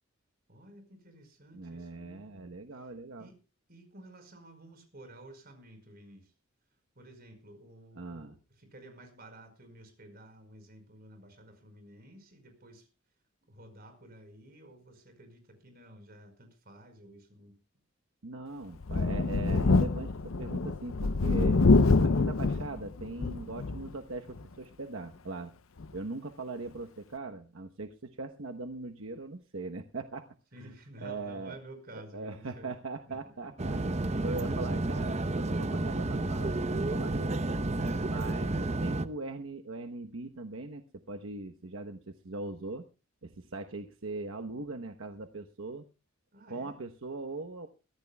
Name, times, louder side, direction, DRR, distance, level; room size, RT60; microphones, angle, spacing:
voice 1, 0.5-2.9 3.2-3.4 3.7-6.3 6.9-12.9 13.5-17.6 30.5-32.7 33.1-33.5 37.8-38.1 46.3-46.8, right 1 dB, 50° right, 7 dB, 5.0 m, -52 dB
voice 2, 1.5-3.3 8.0-8.4 18.2-21.6 22.0-25.5 25.9-30.3 30.6-30.7 31.0-31.6 31.9-33.8 34.2-37.3 38.0-42.9 43.2-45.9 46.5-47.7, right 3 dB, 75° right, 5 dB, 1.0 m, -40 dB
Thunder, 18.8-23.9 24.4-24.5 25.8-25.9, left 3 dB, 85° left, 0.7 m, -25 dB
sound 1, 33.6-39.1, right 2 dB, 35° right, 0.8 m, -31 dB
22.5 x 15.0 x 2.3 m, 0.32 s
head